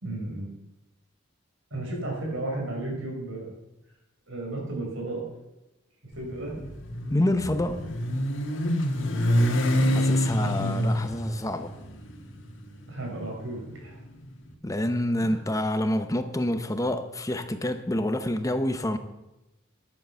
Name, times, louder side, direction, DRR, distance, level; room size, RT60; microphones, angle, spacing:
voice 1, 0.0-0.5 1.7-3.5 4.3-5.3 6.1-6.5 9.2-9.5 10.4-10.8 12.9-14.0 15.2-15.3, right 2 dB, 85° right, 5.5 m, -34 dB
Motorcycle, 6.1-14.3, equal, 70° left, 1.8 m, -27 dB
voice 2, 7.1-7.9 9.9-11.7 14.6-19.0, left 1 dB, 15° left, 0.9 m, -27 dB
11.0 x 9.3 x 6.9 m
head